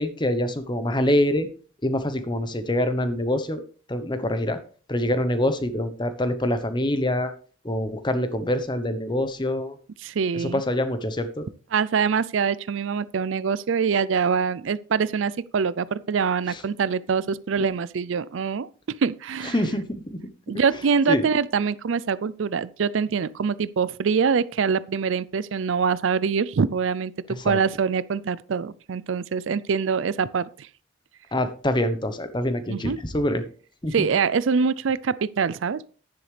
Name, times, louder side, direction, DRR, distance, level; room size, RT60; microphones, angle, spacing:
voice 1, 0.0-1.5 1.8-3.6 3.9-4.6 4.9-7.3 7.6-9.7 10.3-11.5 16.5-16.6 19.5-20.3 21.1-21.2 27.4-27.6 31.3-33.4 33.8-34.1, left 1 dB, 25° left, 1.0 m, -25 dB
voice 2, 10.0-10.6 11.7-19.6 20.5-27.1 27.4-30.7 32.7-33.0 33.9-35.9, right 6 dB, 75° right, 0.4 m, -24 dB
10.5 x 10.5 x 3.3 m
head